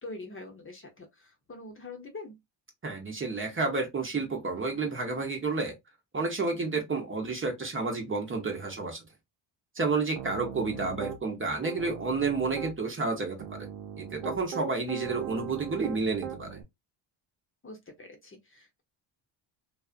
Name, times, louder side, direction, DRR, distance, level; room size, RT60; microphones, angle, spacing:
voice 1, 0.0-2.4 10.7-11.1 17.6-18.8, left 2 dB, 25° left, 0.9 m, -44 dB
voice 2, 2.8-5.7 6.1-9.0 9.7-13.7 14.0-16.6, right 3 dB, 25° right, 1.0 m, -30 dB
Piano, 10.2-11.2 11.6-12.7 13.4-16.6, right 8 dB, 85° right, 0.8 m, -39 dB
2.5 x 2.4 x 2.5 m
cardioid pair, 90°, 46 cm